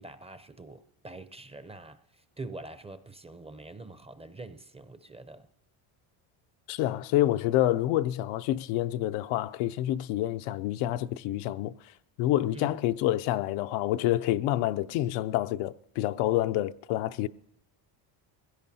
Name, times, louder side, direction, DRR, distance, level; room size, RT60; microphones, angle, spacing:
voice 1, 0.0-5.5 12.5-12.8, right 2 dB, 15° right, 0.4 m, -45 dB
voice 2, 6.7-11.7 12.2-17.3, left 14 dB, 90° left, 0.6 m, -28 dB
22.0 x 16.0 x 2.7 m
cardioid pair, 110°, 49 cm